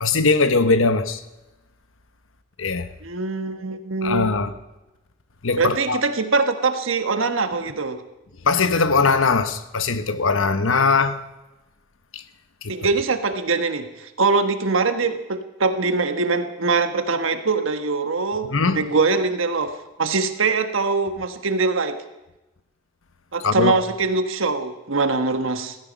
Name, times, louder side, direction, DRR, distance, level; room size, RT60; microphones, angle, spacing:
voice 1, 0.0-1.2 2.6-2.9 4.0-4.5 5.4-6.0 8.4-11.2 12.1-12.2 12.6-12.7 18.5-18.8 23.4-23.7, left 4 dB, 80° left, 1.0 m, -20 dB
voice 2, 3.0-4.3 5.6-8.0 12.7-19.7 20.0-22.0 23.3-25.8, right 4 dB, 80° right, 1.3 m, -23 dB
16.0 x 15.5 x 5.3 m
head